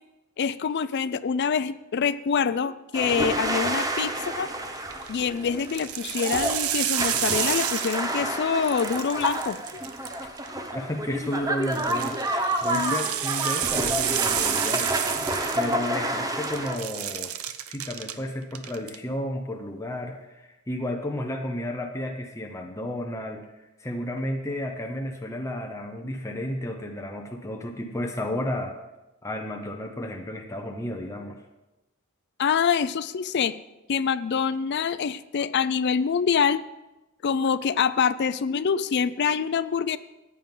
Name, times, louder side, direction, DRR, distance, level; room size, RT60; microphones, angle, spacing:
voice 1, 0.4-4.5 5.1-9.6 12.7-13.0 32.4-33.5 33.9-36.6 37.2-40.0, left 6 dB, 50° left, 14 dB, 0.4 m, -25 dB
sound 1, 2.9-16.8, right 1 dB, 15° right, 0.9 m, -29 dB
sound 2, 4.8-5.1 5.6-8.3 8.6-10.5 11.6-16.2 16.4-18.1 18.5-19.0, right 11 dB, 80° right, 0.6 m, -30 dB
voice 2, 10.7-12.4 12.6-15.1 15.5-17.3 17.7-23.5 23.8-28.8 29.2-31.4, left 1 dB, 15° left, 2 dB, 0.7 m, -32 dB
14.5 x 8.9 x 3.8 m, 1.0 s
head